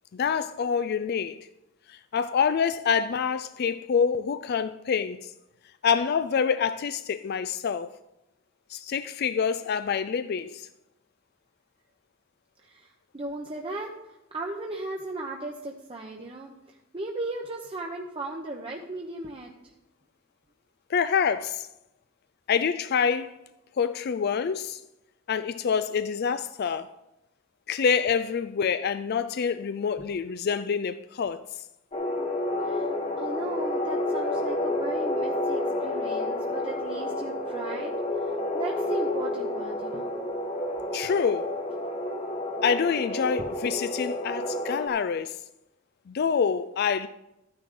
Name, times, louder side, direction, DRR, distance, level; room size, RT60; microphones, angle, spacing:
voice 1, 0.1-1.5 1.9-5.3 5.8-7.9 8.7-10.7 20.9-21.7 22.5-23.4 23.8-24.8 25.3-26.9 27.7-31.4 40.9-41.5 42.6-45.4 46.1-47.1, left 6 dB, 50° left, 0.4 m, -26 dB
voice 2, 12.6-19.5 32.6-32.9 33.2-40.1, right 2 dB, 30° right, 0.8 m, -37 dB
sound 1, 31.9-44.9, left 1 dB, 35° left, 1.4 m, -30 dB
13.0 x 9.7 x 3.8 m
head